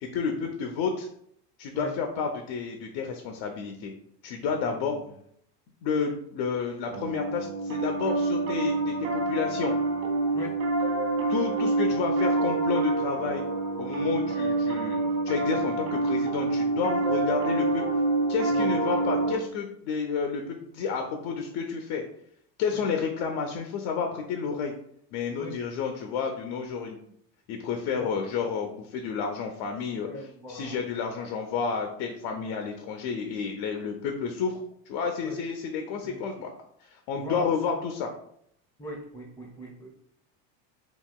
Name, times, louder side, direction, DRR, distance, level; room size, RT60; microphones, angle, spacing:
voice 1, 0.0-1.1 1.6-3.9 4.2-5.0 5.8-9.7 11.3-13.4 13.8-17.8 18.3-22.0 22.6-24.7 25.1-27.0 27.5-34.6 34.9-36.5 36.8-38.1, left 5 dB, 50° left, 4 dB, 0.5 m, -30 dB
voice 2, 4.6-5.1 10.3-10.6 14.1-14.2 16.8-16.9 18.5-18.7 22.7-22.8 25.4-25.6 27.9-28.1 30.0-30.8 32.3-32.5 35.2-35.4 36.0-36.2 37.2-37.7 38.8-39.9, left 1 dB, 5° left, 0 dB, 0.6 m, -41 dB
Piano, 6.9-19.4, right 3 dB, 55° right, 0.7 m, -27 dB
2.8 x 2.7 x 2.2 m, 0.69 s
supercardioid pair, 100°, 50 cm